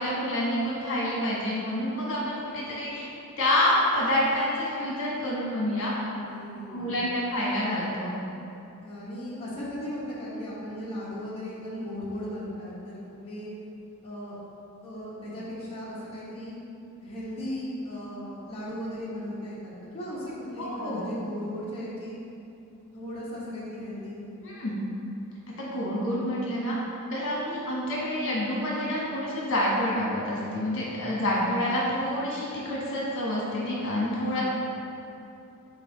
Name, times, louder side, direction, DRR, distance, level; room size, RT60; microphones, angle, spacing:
voice 1, 0.0-3.1 3.4-5.9 6.7-8.1 20.6-21.0 24.4-24.8 25.6-26.7 27.1-34.4, left 1 dB, 60° left, -5 dB, 1.3 m, -28 dB
voice 2, 6.3-7.0 8.8-13.5 14.0-14.4 14.8-16.5 17.0-22.2 22.9-24.2 34.3-34.4, equal, 25° left, -9 dB, 1.2 m, -37 dB
5.9 x 4.4 x 3.9 m, 2.8 s
head